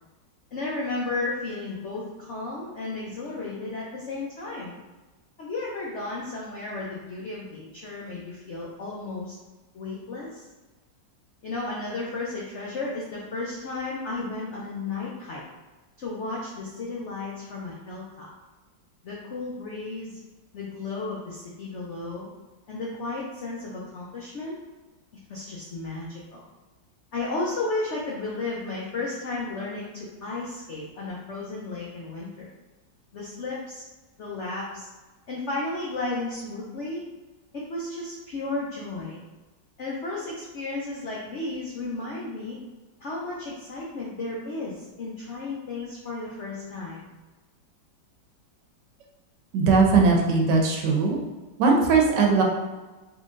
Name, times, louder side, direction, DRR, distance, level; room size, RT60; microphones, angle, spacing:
voice 1, 0.5-4.7 5.4-9.4 9.7-10.5 11.4-15.4 16.0-18.3 19.0-20.2 20.5-22.3 22.7-24.6 25.3-26.4 27.1-32.5 33.1-33.8 34.2-34.9 35.3-37.0 37.5-39.2 39.8-42.6 43.0-47.1, left 3 dB, 75° left, -5 dB, 0.6 m, -33 dB
voice 2, 49.5-51.2 51.6-52.4, right 4 dB, 75° right, 1 dB, 1.2 m, -19 dB
3.8 x 3.0 x 2.5 m, 1.2 s
omnidirectional pair, 2.0 m